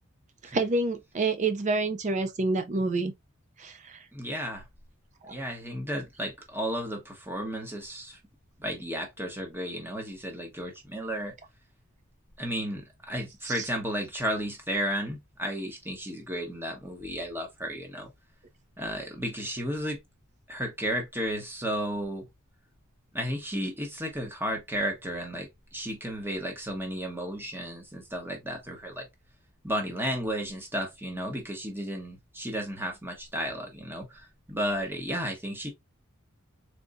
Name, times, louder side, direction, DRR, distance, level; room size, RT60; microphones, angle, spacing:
voice 1, 0.4-3.1 3.6-4.0 5.2-5.4 13.4-13.7, right 3 dB, 35° right, 0.4 m, -28 dB
voice 2, 4.1-4.7 5.3-8.2 8.6-11.3 12.4-18.1 18.8-20.0 20.5-22.3 23.1-29.1 29.6-35.7, equal, 10° right, 1.1 m, -33 dB
3.8 x 3.4 x 2.4 m
head